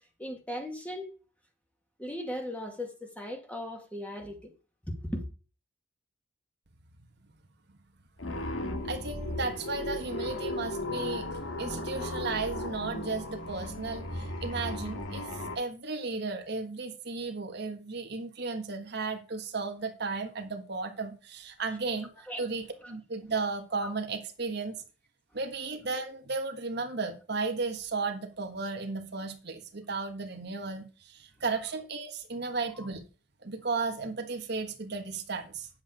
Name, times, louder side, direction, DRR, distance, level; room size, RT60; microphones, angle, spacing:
voice 1, 0.2-1.1 2.0-4.5 4.9-5.3 22.3-22.5 22.8-22.9 23.8-23.9 32.8-32.9, left 1 dB, 5° left, 2.1 m, -37 dB
sound 1, 8.2-15.6, left 1 dB, 85° left, 1.9 m, -36 dB
voice 2, 8.8-11.3 11.6-22.1 22.4-24.8 25.3-33.0 33.4-35.7, right 4 dB, 55° right, 1.4 m, -34 dB
9.6 x 7.6 x 5.0 m
head